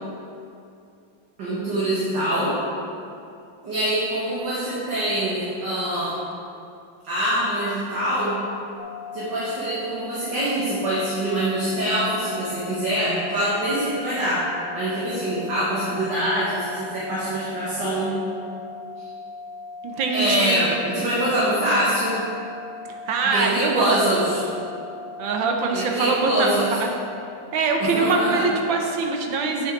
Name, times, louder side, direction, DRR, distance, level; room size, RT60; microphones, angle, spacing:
voice 1, 1.4-2.6 3.6-6.1 7.0-8.4 9.1-14.4 14.7-18.1 20.1-22.2 23.2-24.4 25.7-26.8 27.8-28.5, right 1 dB, 65° right, -10 dB, 2.2 m, -24 dB
sound 1, 8.8-27.0, left 3 dB, 70° left, 1.1 m, -38 dB
voice 2, 19.8-20.6 23.1-24.0 25.2-26.9 27.5-29.7, right 4 dB, 80° right, 2 dB, 1.5 m, -23 dB
8.2 x 8.1 x 3.8 m, 2.6 s
omnidirectional pair, 2.1 m